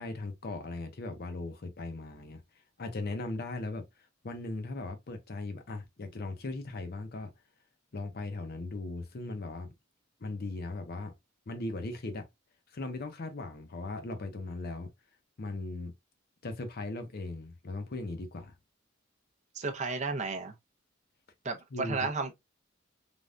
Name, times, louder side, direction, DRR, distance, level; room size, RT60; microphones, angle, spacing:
voice 1, 0.0-2.4 2.8-3.9 4.2-7.3 7.9-9.7 10.2-11.1 11.5-12.3 12.7-14.9 15.4-15.9 16.4-18.5 21.7-22.1, left 2 dB, 50° left, 0.6 m, -38 dB
voice 2, 19.6-20.5 21.4-22.3, right 3 dB, 35° right, 0.6 m, -33 dB
3.4 x 2.3 x 2.4 m
head